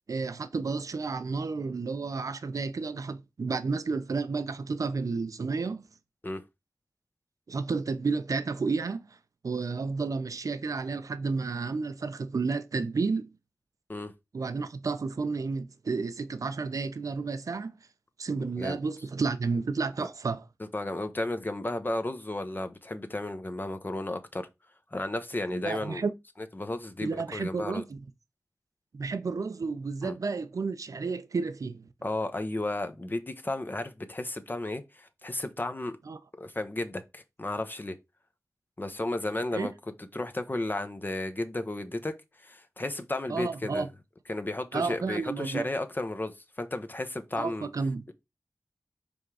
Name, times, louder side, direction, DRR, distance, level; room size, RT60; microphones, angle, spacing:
voice 1, 0.1-5.8 7.5-9.2 9.4-13.3 14.3-17.7 18.2-20.5 25.5-26.1 27.0-28.0 28.9-31.9 36.1-36.2 39.5-39.7 43.3-43.9 44.7-45.7 47.4-48.0, right 4 dB, 70° right, 0.7 m, -31 dB
voice 2, 20.7-24.5 24.9-26.1 26.4-27.8 30.0-30.2 32.0-36.0 36.4-38.0 38.8-39.7 40.0-42.1 42.4-43.9 44.3-47.7, left 2 dB, 35° left, 0.9 m, -33 dB
5.2 x 3.7 x 4.8 m
wide cardioid pair, 55°, 6 cm